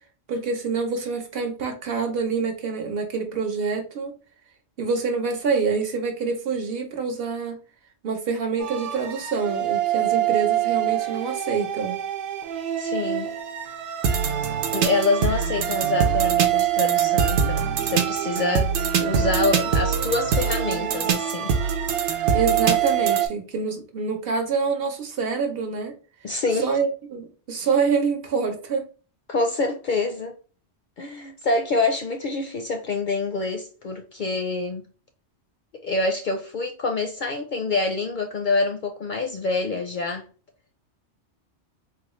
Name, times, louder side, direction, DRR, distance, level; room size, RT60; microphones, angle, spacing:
voice 1, 0.3-4.1 4.8-7.6 8.0-12.0 22.3-26.0 26.6-28.8, right 5 dB, 60° right, 0.9 m, -26 dB
sound 1, 8.6-23.3, right 8 dB, 80° right, 0.9 m, -24 dB
voice 2, 12.8-13.4 14.7-18.7 19.0-21.5 26.2-26.7 29.3-30.3 31.0-34.9 35.8-40.2, left 3 dB, 55° left, 0.5 m, -26 dB
4.1 x 2.3 x 3.0 m
omnidirectional pair, 1.2 m